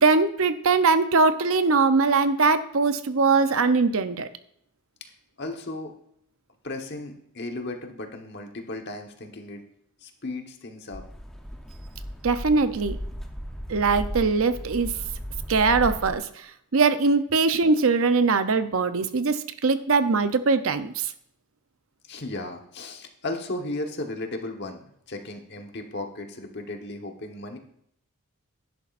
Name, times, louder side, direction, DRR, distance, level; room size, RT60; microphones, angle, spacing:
voice 1, 0.0-4.3 12.2-13.0 13.7-14.9 15.5-16.3 16.7-21.1, right 4 dB, 65° right, 10 dB, 0.6 m, -21 dB
voice 2, 5.4-5.9 6.6-9.6 10.0-11.0 22.1-27.6, left 2 dB, 50° left, 4 dB, 1.2 m, -35 dB
sound 1, 10.9-16.2, equal, ahead, 0.7 m, -36 dB
11.0 x 11.0 x 2.5 m, 0.72 s
head